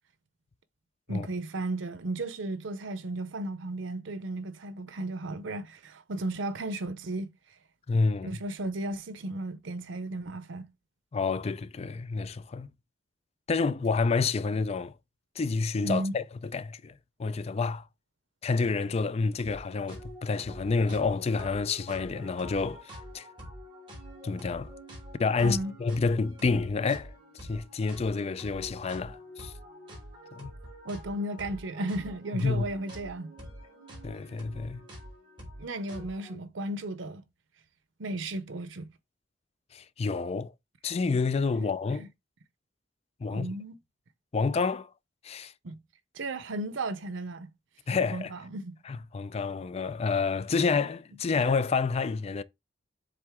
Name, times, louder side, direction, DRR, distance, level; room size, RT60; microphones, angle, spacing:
voice 1, 1.1-7.3 8.2-10.7 15.8-16.1 25.4-25.7 30.8-33.3 35.6-37.2 38.0-38.9 41.9-42.1 43.2-43.8 45.6-45.8 46.1-47.5 48.1-48.8, right 2 dB, 90° right, 0.7 m, -34 dB
voice 2, 7.9-8.3 11.1-12.7 13.5-14.9 15.4-16.2 16.5-16.9 17.2-17.8 18.4-23.3 24.2-24.7 25.2-27.1 27.5-29.5 30.3-30.5 32.4-32.6 34.0-34.8 39.7-40.5 40.8-42.1 43.2-43.5 44.3-44.9 45.2-45.5 47.9-48.3 48.9-52.4, left 4 dB, 35° left, 0.4 m, -29 dB
sound 1, 19.4-19.6 19.9-36.4, equal, 25° right, 3.5 m, -46 dB
7.6 x 3.7 x 3.6 m
head